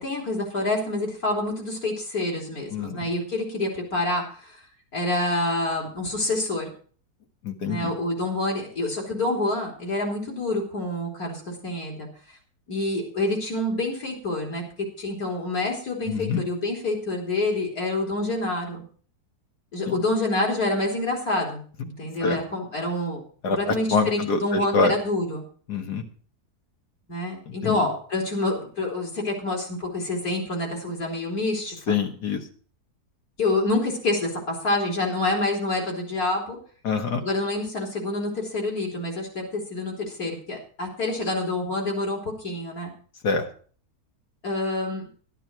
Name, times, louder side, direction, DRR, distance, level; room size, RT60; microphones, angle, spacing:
voice 1, 0.0-4.6 4.9-6.7 7.7-12.1 12.7-14.6 15.0-18.8 19.7-23.2 23.5-25.4 27.1-32.0 33.4-36.6 37.2-42.9 44.4-45.1, left 2 dB, 65° left, 0 dB, 4.1 m, -27 dB
voice 2, 2.7-3.1 7.4-7.9 16.1-16.4 19.9-20.0 22.2-22.4 23.4-24.9 25.7-26.0 27.6-27.9 31.9-32.4 36.8-37.2 43.2-43.5, left 4 dB, 85° left, 5 dB, 2.2 m, -25 dB
12.0 x 12.0 x 4.5 m, 0.43 s
omnidirectional pair, 1.7 m